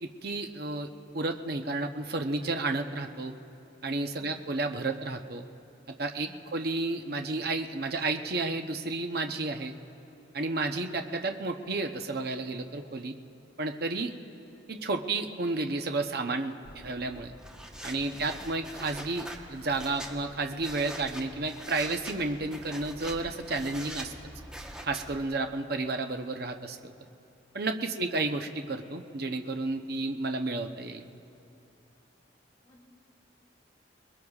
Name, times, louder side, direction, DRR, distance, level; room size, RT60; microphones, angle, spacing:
voice 1, 0.0-0.9 1.1-3.3 3.8-5.5 6.0-9.7 10.3-13.1 13.6-14.1 14.7-16.6 16.8-17.3 17.8-24.1 24.8-26.9 27.5-31.1, right 3 dB, 55° right, 5 dB, 0.8 m, -32 dB
voice 2, 4.2-4.5 6.2-6.6 27.9-28.2 32.6-32.8, equal, 20° left, -4 dB, 4.6 m, -56 dB
sound 1, 16.7-25.3, right 1 dB, 5° right, 1.1 m, -44 dB
27.5 x 21.0 x 2.4 m, 2.6 s
head